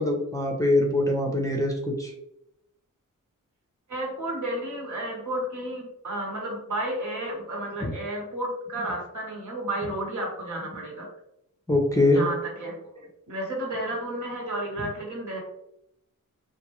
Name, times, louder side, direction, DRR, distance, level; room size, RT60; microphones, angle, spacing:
voice 1, 0.0-2.1 7.8-7.9 11.7-12.2, left 2 dB, 10° left, 0 dB, 0.6 m, -23 dB
voice 2, 3.9-11.1 12.1-15.4, right 1 dB, 60° right, -2 dB, 1.1 m, -32 dB
2.5 x 2.2 x 3.0 m, 0.81 s
cardioid pair, 45°, 34 cm